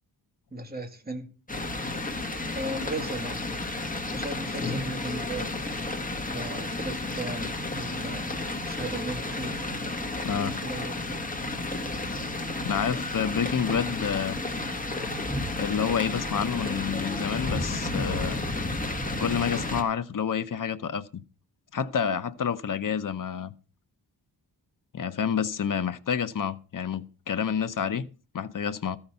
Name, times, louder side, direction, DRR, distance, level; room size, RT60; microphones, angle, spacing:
voice 1, 0.5-1.3 2.5-3.5 4.1-5.5 6.3-9.7 10.4-11.0, right 2 dB, 20° right, 2.0 m, -36 dB
sound 1, 1.5-19.8, left 2 dB, 20° left, 1.6 m, -32 dB
voice 2, 10.2-10.6 12.6-14.4 15.5-18.4 19.2-21.2 21.7-23.5 24.9-28.1 28.3-29.0, left 7 dB, 50° left, 0.8 m, -29 dB
13.5 x 5.8 x 6.7 m
wide cardioid pair, 105°, 41 cm